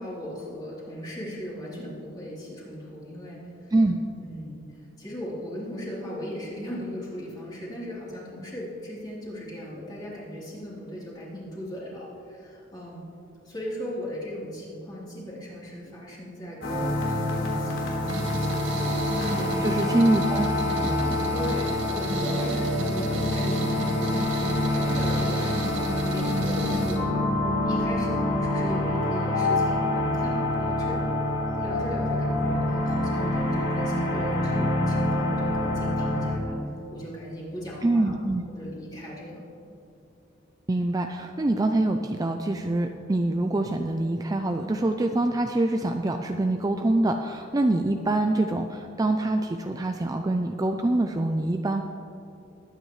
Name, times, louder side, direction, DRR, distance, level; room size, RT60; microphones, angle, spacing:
voice 1, 0.0-3.7 4.2-4.6 5.0-13.0 13.4-18.7 19.2-20.1 21.3-27.0 27.5-31.0 31.5-36.6 36.9-38.1 38.6-39.4, equal, 20° left, -7 dB, 3.3 m, -38 dB
sound 1, 16.6-36.3, left 1 dB, 75° left, 3.2 m, -26 dB
sound 2, 18.1-27.0, right 1 dB, 75° right, 2.1 m, -34 dB
voice 2, 19.6-20.5 20.8-21.2 37.8-38.4 40.7-51.8, right 2 dB, 20° right, 5 dB, 0.4 m, -25 dB
21.0 x 9.2 x 3.2 m, 2.7 s
head